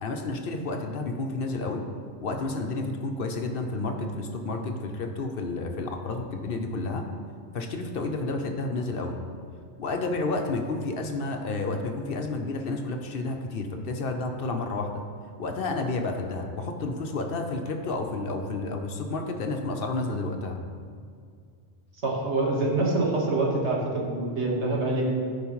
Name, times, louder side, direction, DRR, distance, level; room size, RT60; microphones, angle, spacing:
voice 1, 0.0-1.8 2.2-7.0 7.5-9.2 9.8-15.0 15.4-20.6, left 3 dB, 60° left, 4 dB, 0.9 m, -30 dB
voice 2, 22.0-25.1, right 2 dB, 85° right, -2 dB, 1.7 m, -25 dB
14.0 x 4.9 x 3.1 m, 2.2 s
omnidirectional pair, 1.1 m